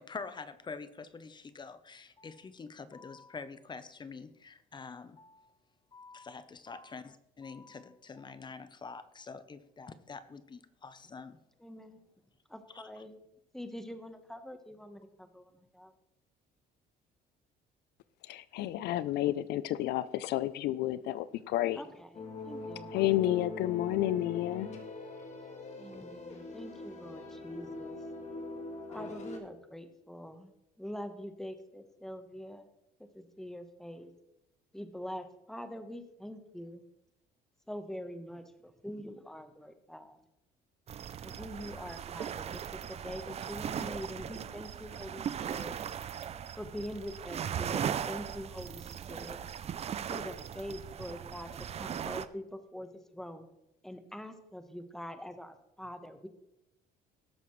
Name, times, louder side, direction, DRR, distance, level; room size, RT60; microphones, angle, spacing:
voice 1, 0.0-5.5 5.9-11.4 12.7-13.0, left 4 dB, 25° left, 13 dB, 0.7 m, -46 dB
voice 2, 11.6-12.0 12.5-13.2 13.5-15.1 15.3-15.9 21.8-22.1 22.4-22.9 25.8-28.0 28.9-30.5 30.8-32.7 33.1-34.1 34.7-36.8 37.7-40.2 41.2-45.8 46.6-49.4 50.1-51.5 51.8-53.5 53.8-56.3, equal, ahead, 8 dB, 1.1 m, -44 dB
voice 3, 18.3-21.8 22.9-24.7, left 14 dB, 75° left, 16 dB, 0.5 m, -30 dB
sound 1, 22.1-29.4, left 2 dB, 45° left, 1.7 m, -43 dB
sound 2, 40.9-52.3, right 8 dB, 40° right, 0.5 m, -38 dB
18.0 x 7.0 x 3.1 m, 0.87 s
cardioid pair, 110°, 17 cm